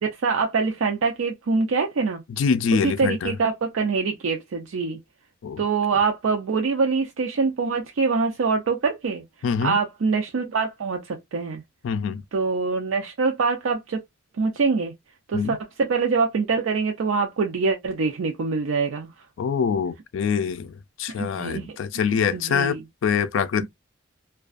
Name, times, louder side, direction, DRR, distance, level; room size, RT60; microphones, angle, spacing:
voice 1, 0.0-2.2 2.8-5.0 5.6-9.2 9.6-11.6 12.3-14.0 14.4-14.9 15.3-19.1 21.2-21.8 22.1-22.8, right 4 dB, 90° right, 0.5 m, -24 dB
voice 2, 2.4-3.4 5.4-5.6 9.4-9.8 11.8-12.2 15.3-15.6 19.4-23.7, left 6 dB, 70° left, 0.3 m, -25 dB
2.4 x 2.3 x 2.3 m
head